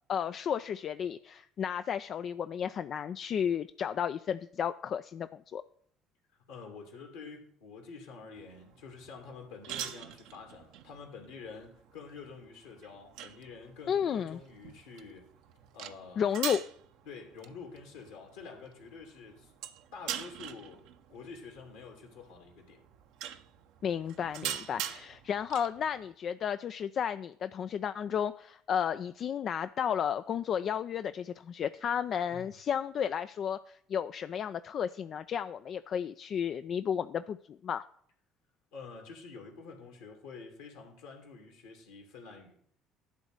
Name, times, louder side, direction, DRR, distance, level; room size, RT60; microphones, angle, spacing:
voice 1, 0.1-5.6 13.9-14.4 16.2-16.6 23.8-37.8, left 8 dB, 50° left, 12 dB, 0.3 m, -33 dB
voice 2, 6.5-15.3 15.7-16.3 17.0-19.5 19.9-22.8 24.8-24.9 32.3-32.5 38.7-42.6, left 5 dB, 75° left, 2 dB, 2.7 m, -48 dB
sound 1, 8.3-26.1, right 10 dB, 65° right, 0.7 m, -44 dB
11.5 x 4.0 x 7.8 m, 0.63 s
figure-of-eight pair, 55°, 0 cm